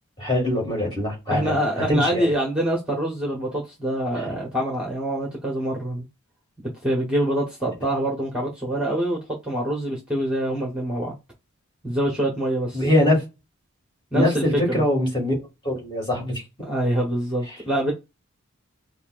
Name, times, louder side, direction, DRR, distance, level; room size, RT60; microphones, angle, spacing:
voice 1, 0.2-1.6 1.9-2.3 4.2-4.3 12.7-13.2 14.1-15.3 15.6-16.4, left 1 dB, 20° left, 2.0 m, -22 dB
voice 2, 1.3-6.1 6.8-11.1 11.8-12.9 14.1-14.8 16.6-17.9, right 1 dB, 5° right, 1.1 m, -25 dB
5.5 x 2.4 x 2.5 m
head